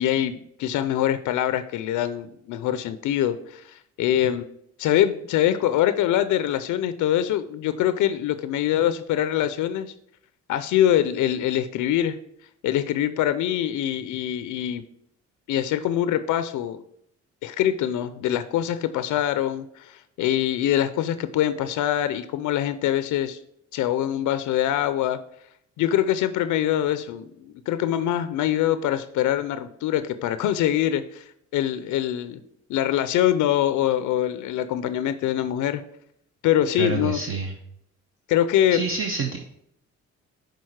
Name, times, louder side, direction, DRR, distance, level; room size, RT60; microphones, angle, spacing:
voice 1, 0.0-4.5 4.8-9.9 10.5-12.2 12.6-14.8 15.5-16.8 17.4-23.4 23.7-25.2 25.8-31.2 31.5-32.4 32.7-35.8 36.4-37.2 38.3-38.8, left 11 dB, 80° left, 12 dB, 0.5 m, -24 dB
voice 2, 36.8-37.5 38.7-39.4, right 4 dB, 45° right, 2 dB, 0.8 m, -27 dB
6.4 x 4.0 x 4.7 m, 0.72 s
cardioid pair, 90°, 30 cm